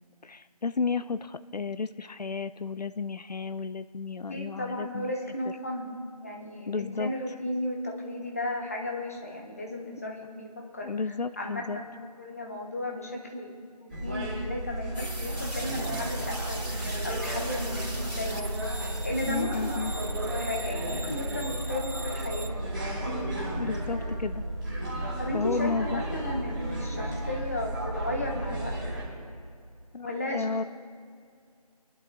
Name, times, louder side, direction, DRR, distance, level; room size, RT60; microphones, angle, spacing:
voice 1, 0.2-5.1 6.7-7.1 10.8-11.8 19.3-19.9 23.5-24.4 24.9-26.0 29.9-30.1 30.3-30.6, left 4 dB, 85° left, 13 dB, 0.5 m, -32 dB
voice 2, 4.3-10.9 11.4-11.9 12.2-13.5 13.8-18.6 19.0-20.1 20.3-22.7 25.2-28.7 30.0-30.6, left 1 dB, 20° left, 0 dB, 1.1 m, -35 dB
sound 1, 13.9-29.0, right 1 dB, 10° right, 3.1 m, -33 dB
sound 2, 14.9-22.5, right 1 dB, 85° right, 2.4 m, -41 dB
25.0 x 11.0 x 2.3 m, 2.3 s
figure-of-eight pair, 170°, 20 cm